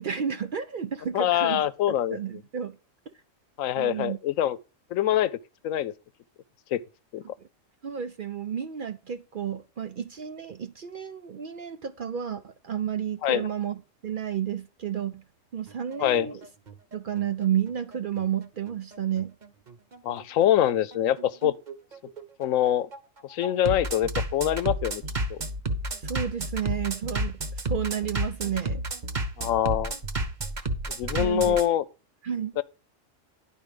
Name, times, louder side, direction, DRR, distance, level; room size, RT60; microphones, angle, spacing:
voice 1, 0.0-1.6 1.9-2.8 3.8-4.2 7.2-7.5 7.8-15.2 15.5-16.4 16.9-19.3 26.0-28.8 31.1-31.6 32.2-32.5, right 9 dB, 60° right, 0.6 m, -31 dB
voice 2, 1.1-2.2 3.6-4.6 4.9-5.4 5.6-5.9 6.7-6.8 7.1-7.2 13.2-13.5 16.0-16.3 20.0-21.5 22.4-22.9 23.2-25.0 25.3-25.4 29.4-29.9 31.0-31.8 32.6-32.7, left 11 dB, 90° left, 1.0 m, -24 dB
Bass drum, 15.7-31.6, right 1 dB, 40° right, 1.0 m, -32 dB
10.5 x 4.6 x 5.0 m
omnidirectional pair, 1.3 m